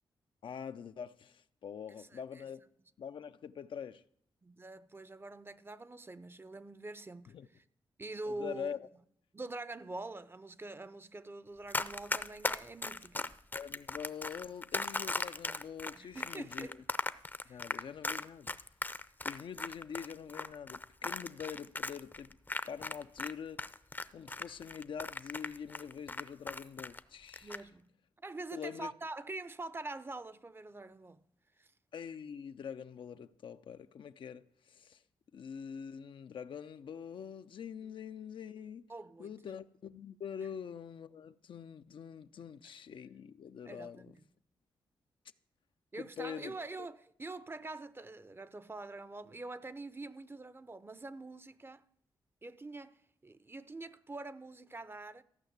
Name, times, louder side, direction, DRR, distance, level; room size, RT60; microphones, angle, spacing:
voice 1, 0.4-2.6 3.0-4.0 7.3-7.5 8.3-8.9 13.5-16.8 17.5-18.5 19.2-22.3 22.6-23.6 24.1-27.6 28.5-28.9 31.9-35.0 35.3-38.8 39.2-44.1 45.9-46.6, left 7 dB, 70° left, 0.5 m, -44 dB
voice 2, 2.0-2.4 4.4-7.6 8.0-8.8 9.3-13.3 15.9-16.8 17.4-17.7 27.4-27.9 28.2-31.2 31.6-31.7 38.9-39.3 43.6-44.2 45.9-51.8 52.4-55.2, right 2 dB, 25° right, 0.6 m, -45 dB
Run, 11.7-23.3 23.6-27.0 27.3-27.6, left 2 dB, 20° left, 0.6 m, -37 dB
14.0 x 5.8 x 8.0 m
cardioid pair, 55°, 9 cm